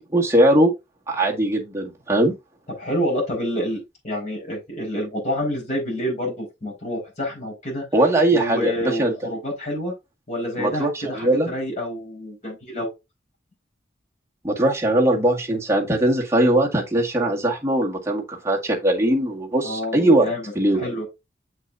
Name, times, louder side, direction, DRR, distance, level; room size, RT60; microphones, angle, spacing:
voice 1, 0.1-0.7 1.1-2.3 7.9-9.1 10.6-11.5 14.4-20.3 20.6-20.8, right 1 dB, 15° right, 1.8 m, -20 dB
voice 2, 2.8-7.8 8.3-9.9 10.3-12.9 19.6-20.4 20.7-21.1, equal, 40° left, 4.9 m, -28 dB
7.5 x 6.1 x 2.6 m
head